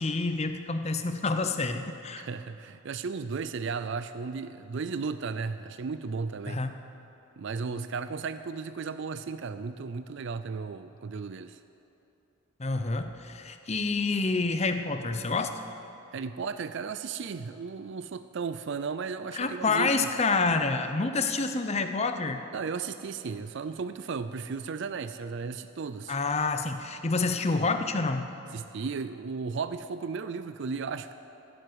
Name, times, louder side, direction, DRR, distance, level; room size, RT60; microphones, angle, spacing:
voice 1, 0.0-2.2 6.5-6.8 12.6-15.6 19.3-22.4 26.1-28.3, left 3 dB, 30° left, 8 dB, 0.7 m, -28 dB
voice 2, 2.2-6.6 7.4-11.6 16.1-20.1 22.5-26.2 28.5-31.1, right 5 dB, 55° right, 11 dB, 0.4 m, -35 dB
15.5 x 7.8 x 9.4 m, 2.9 s
head